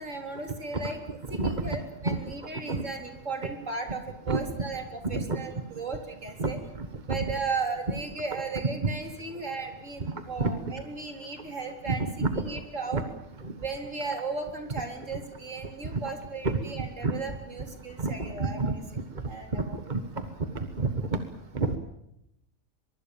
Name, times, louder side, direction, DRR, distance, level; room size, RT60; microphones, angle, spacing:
voice 1, 0.0-6.6 7.0-13.0 13.6-18.8 19.2-19.8, right 4 dB, 60° right, 4 dB, 4.2 m, -36 dB
voice 2, 11.9-12.4 12.9-13.0 13.4-13.5 16.4-17.2 18.0-18.7 19.9-20.0 20.5-20.9 21.5-21.8, right 3 dB, 35° right, 8 dB, 1.6 m, -28 dB
23.5 x 23.0 x 7.2 m, 0.81 s
omnidirectional pair, 1.5 m